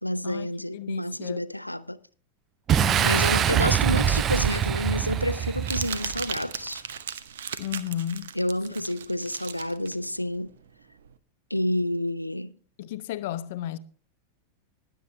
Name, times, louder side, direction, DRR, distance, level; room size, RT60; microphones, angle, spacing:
voice 1, 0.0-2.0 3.0-6.8 8.4-10.5 11.5-12.5, left 1 dB, 90° left, 0.5 m, -29 dB
voice 2, 0.7-1.4 2.8-3.7 7.6-8.3 12.8-13.8, left 11 dB, 50° left, 0.8 m, -33 dB
Boom, 2.7-6.3, right 10 dB, 30° right, 0.4 m, -24 dB
Crumpling crinkling, 4.7-11.1, right 8 dB, 60° right, 0.8 m, -37 dB
20.0 x 8.0 x 3.3 m
figure-of-eight pair, 90°, 0 cm